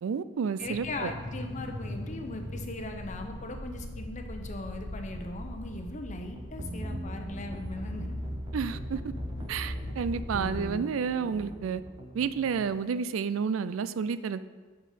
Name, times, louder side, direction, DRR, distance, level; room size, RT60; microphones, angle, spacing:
voice 1, 0.0-1.1 8.5-9.0 9.5-11.8 12.1-14.4, right 6 dB, 90° right, 14 dB, 0.4 m, -30 dB
sound 1, 0.6-10.6, left 1 dB, 65° left, 1.2 m, -39 dB
voice 2, 0.6-8.2, left 2 dB, 40° left, 5 dB, 0.8 m, -39 dB
sound 2, 6.3-12.8, right 1 dB, 25° right, 0.7 m, -43 dB
6.5 x 5.9 x 5.0 m, 1.4 s
head